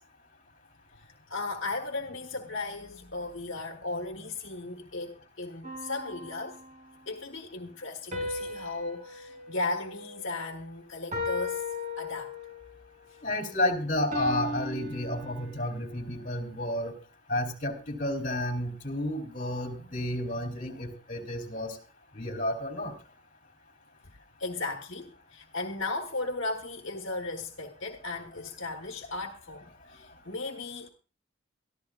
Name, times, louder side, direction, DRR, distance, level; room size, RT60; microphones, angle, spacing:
voice 1, 1.0-6.6 7.1-11.6 12.0-12.3 24.4-30.9, left 3 dB, 65° left, 1.4 m, -36 dB
sound 1, 5.6-7.1 8.1-10.6 11.1-12.7 14.1-15.8, left 2 dB, 40° right, 6.3 m, -37 dB
voice 2, 13.2-16.9 17.3-21.8 22.1-22.9, left 1 dB, 40° left, 3.3 m, -31 dB
23.0 x 14.0 x 2.4 m
head